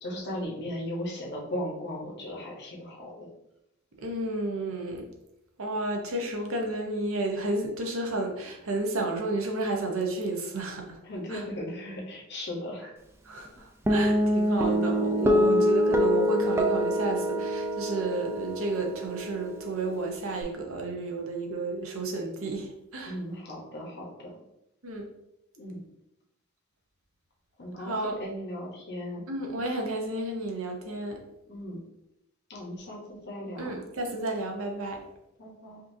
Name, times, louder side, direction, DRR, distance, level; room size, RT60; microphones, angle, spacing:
voice 1, 0.0-3.3 11.0-12.9 15.4-15.6 23.0-24.3 25.6-25.8 27.6-29.2 31.5-31.8 32.5-33.8 35.4-35.8, left 1 dB, 50° left, -1 dB, 1.0 m, -37 dB
voice 2, 4.0-5.1 5.6-11.0 11.3-11.4 13.2-23.1 24.8-25.1 27.8-28.2 29.3-31.2 33.6-35.0, right 2 dB, 65° right, 2 dB, 0.8 m, -31 dB
Guitar, 13.9-20.4, equal, 10° right, 0.4 m, -26 dB
5.3 x 2.6 x 2.6 m, 0.85 s
head